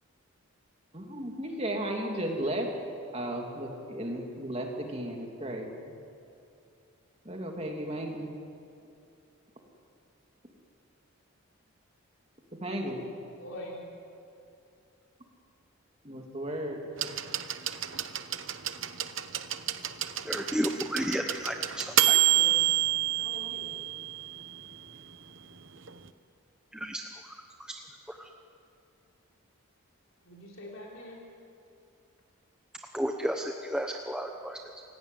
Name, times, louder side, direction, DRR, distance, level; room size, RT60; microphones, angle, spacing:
voice 1, 0.9-2.7 3.1-5.7 7.2-8.3 12.6-13.0 16.0-16.8, right 1 dB, 30° right, 1 dB, 3.0 m, -34 dB
voice 2, 13.4-13.8 16.8-17.3 22.1-22.7 23.2-23.8 30.2-31.2, left 1 dB, 65° left, -2 dB, 4.1 m, -45 dB
sound 1, 17.0-24.8 25.9-26.0, right 14 dB, 60° right, 1.0 m, -28 dB
voice 3, 20.2-22.2 26.7-28.3 32.9-34.8, equal, 5° right, 2 dB, 0.9 m, -33 dB
29.0 x 17.0 x 9.4 m, 2.6 s
head